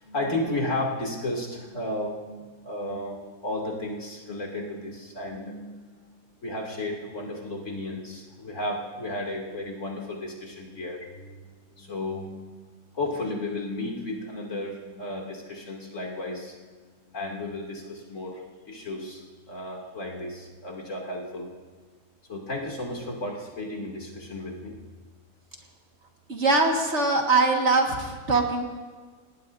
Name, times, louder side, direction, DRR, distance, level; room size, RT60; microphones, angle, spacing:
voice 1, 0.0-6.0 6.4-11.5 11.8-12.6 12.9-16.6 17.1-21.5 22.3-24.7, left 1 dB, 55° left, -1 dB, 3.1 m, -33 dB
voice 2, 26.3-28.7, right 3 dB, 50° right, 1 dB, 2.0 m, -22 dB
27.0 x 19.5 x 2.7 m, 1.4 s
omnidirectional pair, 1.6 m